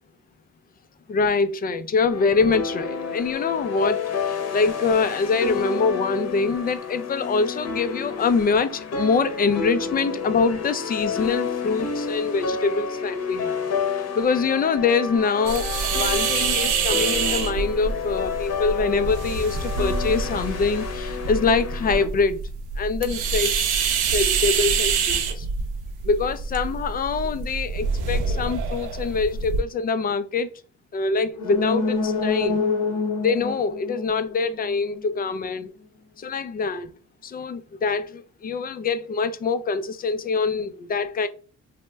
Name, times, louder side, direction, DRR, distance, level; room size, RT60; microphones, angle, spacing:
voice 1, 1.1-13.6 13.9-22.4 22.8-23.7 24.1-25.5 26.0-30.6 30.9-32.7 33.2-35.7 36.2-36.9 37.2-41.3, left 4 dB, 30° left, 0.4 m, -24 dB
sound 1, 2.1-22.1, left 6 dB, 55° left, 0.8 m, -30 dB
sound 2, 15.5-29.6, right 5 dB, 85° right, 0.6 m, -26 dB
sound 3, 31.3-35.0 35.4-35.5, left 4 dB, 85° left, 0.8 m, -26 dB
3.0 x 2.1 x 3.3 m
cardioid pair, 90°, 30 cm